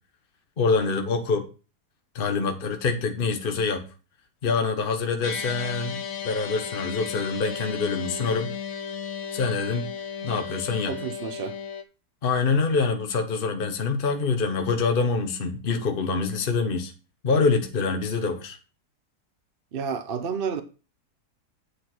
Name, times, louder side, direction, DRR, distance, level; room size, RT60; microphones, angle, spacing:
voice 1, 0.6-1.4 2.1-3.8 4.4-8.5 9.3-9.9 10.2-11.0 12.2-16.9 17.2-18.6, left 4 dB, 35° left, 1.2 m, -25 dB
sound 1, 5.2-11.8, left 7 dB, 60° left, 1.3 m, -34 dB
voice 2, 10.9-11.6 19.7-20.6, right 6 dB, 45° right, 0.7 m, -30 dB
8.5 x 5.1 x 6.0 m
omnidirectional pair, 1.7 m